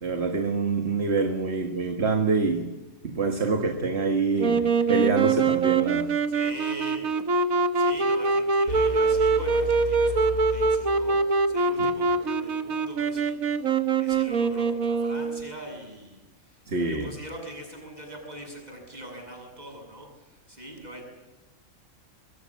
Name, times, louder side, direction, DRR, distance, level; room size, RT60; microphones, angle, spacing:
voice 1, 0.0-2.7 3.0-6.1 11.8-11.9 16.7-17.1, right 4 dB, 50° right, 6 dB, 1.9 m, -26 dB
Wind instrument woodwind instrument, 4.4-15.5, right 4 dB, 80° right, 1.8 m, -24 dB
voice 2, 5.9-21.1, right 1 dB, 30° right, 2 dB, 7.6 m, -42 dB
sound 1, 8.7-11.6, left 10 dB, 70° left, 2.9 m, -36 dB
25.5 x 22.5 x 7.3 m, 1.1 s
omnidirectional pair, 1.4 m